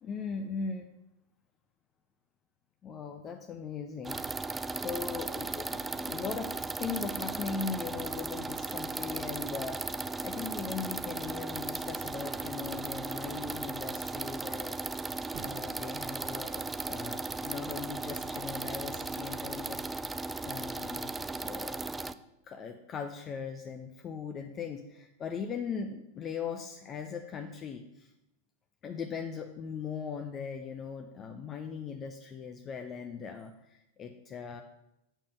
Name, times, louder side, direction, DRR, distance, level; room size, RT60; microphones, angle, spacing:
voice 1, 0.0-0.9 2.8-4.2 4.7-14.8 15.4-19.8 20.1-22.1 22.5-28.1 28.8-34.6, left 6 dB, 30° left, 5 dB, 0.7 m, -39 dB
sound 1, 4.0-22.1, right 3 dB, 10° right, 0.4 m, -36 dB
sound 2, 15.2-16.0 17.6-18.5, right 5 dB, 35° right, 1.2 m, -51 dB
7.3 x 5.2 x 6.8 m, 0.87 s
figure-of-eight pair, 90°, 0 cm